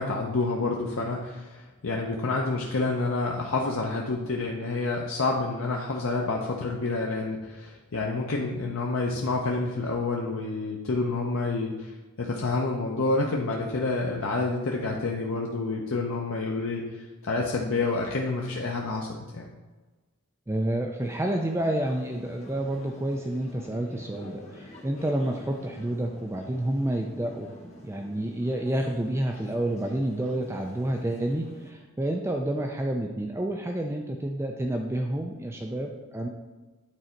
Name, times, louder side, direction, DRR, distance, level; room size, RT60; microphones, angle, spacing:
voice 1, 0.0-11.9 12.2-16.8 17.2-19.5, left 3 dB, 75° left, -1 dB, 0.7 m, -28 dB
voice 2, 20.5-36.3, right 1 dB, 10° right, 2 dB, 0.4 m, -29 dB
sound 1, 21.0-31.7, left 1 dB, 30° left, 1.1 m, -48 dB
9.0 x 3.9 x 4.4 m, 1.2 s
head